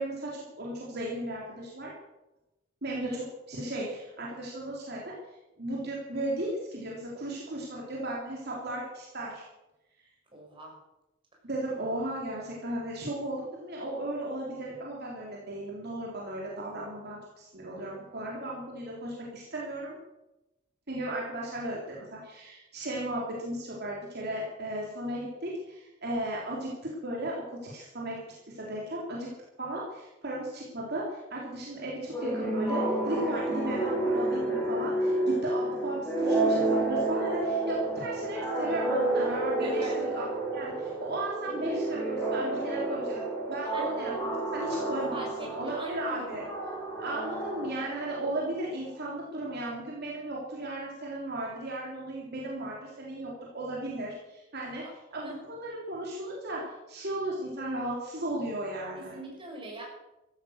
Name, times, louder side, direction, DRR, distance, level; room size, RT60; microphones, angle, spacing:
voice 1, 0.0-1.9 2.8-5.1 5.6-9.4 11.4-20.0 20.9-28.2 28.5-29.3 29.6-40.3 40.5-46.4 47.0-54.8 55.1-59.2, right 1 dB, 55° right, -4 dB, 3.7 m, -35 dB
voice 2, 10.3-10.7 39.6-40.0 43.7-43.9 45.1-46.4 55.2-55.4 58.9-59.8, right 1 dB, 25° right, -1 dB, 6.3 m, -41 dB
sound 1, 32.1-48.5, right 2 dB, 10° left, 6.1 m, -30 dB
15.0 x 14.5 x 6.6 m, 0.95 s
head